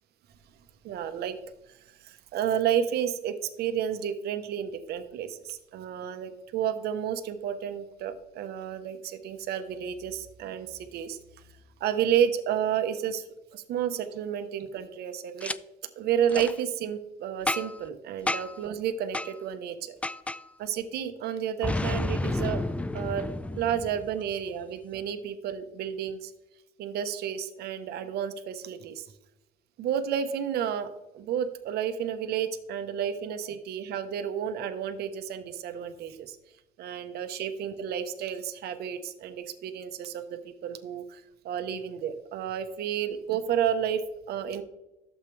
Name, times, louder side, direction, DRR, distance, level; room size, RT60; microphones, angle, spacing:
voice 1, 0.8-1.4 2.0-11.2 11.8-13.2 13.5-15.5 16.0-20.0 20.6-22.6 22.9-23.3 23.6-26.3 26.8-29.1 29.8-30.9 31.1-36.4 36.8-44.0 44.3-44.6, right 9 dB, 75° right, 9 dB, 0.9 m, -31 dB
Boom, 15.4-15.6 16.3-16.5 17.5-17.9 18.3-18.6 19.1-19.3 20.0-20.4 21.6-24.3, left 2 dB, 10° left, 0.3 m, -31 dB
12.0 x 7.4 x 3.2 m, 0.97 s
cardioid pair, 110°, 17 cm